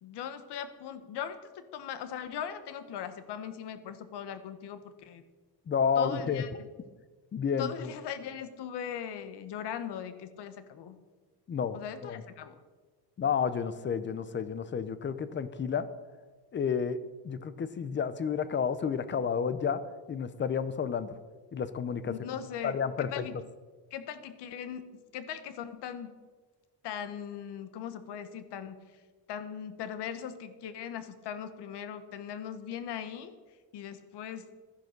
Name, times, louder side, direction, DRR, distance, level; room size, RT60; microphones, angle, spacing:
voice 1, 0.0-5.2 6.0-6.5 7.6-11.0 11.7-12.6 22.0-23.4 23.9-26.2 26.8-28.9 29.3-33.4 33.7-34.5, left 8 dB, 65° left, 11 dB, 1.3 m, -39 dB
voice 2, 5.7-6.4 7.3-7.7 11.5-12.2 13.2-15.9 16.5-17.0 17.2-19.8 20.1-21.1 21.5-22.1 22.6-23.2, left 6 dB, 25° left, 13 dB, 0.6 m, -30 dB
13.0 x 10.5 x 6.6 m, 1.4 s
cardioid pair, 180°, 44 cm